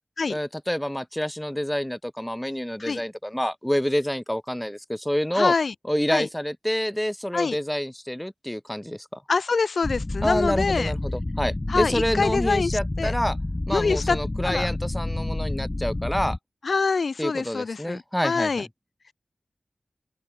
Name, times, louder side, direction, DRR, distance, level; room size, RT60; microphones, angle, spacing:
voice 1, 0.3-5.5 5.9-9.2 10.2-13.4 13.7-16.4 17.2-18.7, equal, 5° left, 1.8 m, -27 dB
voice 2, 5.3-5.7 6.1-6.3 7.3-7.6 9.3-10.9 11.7-12.7 13.0-13.1 13.7-14.7 16.6-18.7, left 4 dB, 60° left, 0.7 m, -25 dB
sound 1, 9.8-16.4, left 2 dB, 20° left, 0.4 m, -29 dB
open air
wide cardioid pair, 110°, 0 cm